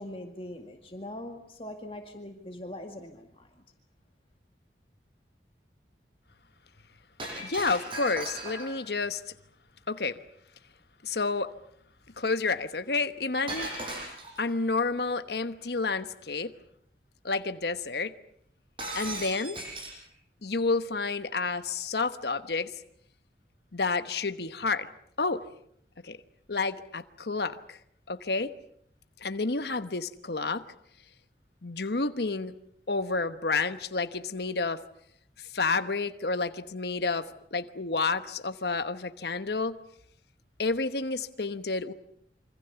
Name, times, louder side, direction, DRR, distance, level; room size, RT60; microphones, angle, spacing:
voice 1, 0.0-3.5, left 1 dB, 30° left, 2.0 m, -41 dB
Shatter, 7.2-8.9 13.5-14.5 18.8-20.0, right 1 dB, 30° right, 7.9 m, -37 dB
voice 2, 7.4-9.2 9.9-10.2 11.0-11.5 12.2-13.8 14.4-16.5 17.2-18.1 18.9-19.6 20.4-22.7 23.7-24.9 25.2-25.5 26.0-26.2 26.5-27.8 28.1-28.5 29.2-30.6 31.6-32.6 32.9-34.8 35.4-39.8 40.6-41.9, left 3 dB, 70° left, 1.1 m, -30 dB
27.0 x 25.0 x 7.0 m
head